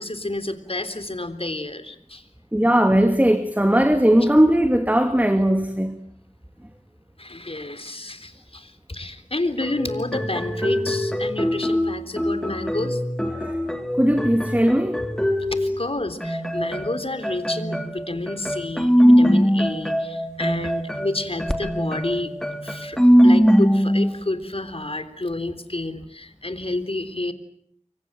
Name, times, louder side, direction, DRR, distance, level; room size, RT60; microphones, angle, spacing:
voice 1, 0.0-2.2 7.2-13.0 15.5-22.3 22.6-23.0 23.2-27.3, left 2 dB, 50° left, 3.6 m, -30 dB
voice 2, 2.5-6.0 13.3-13.6 13.9-15.0, right 1 dB, 10° right, 2.3 m, -18 dB
sound 1, 9.6-15.9 16.2-24.2, equal, 5° left, 3.1 m, -21 dB
29.5 x 24.0 x 7.7 m
wide cardioid pair, 40°, 13 cm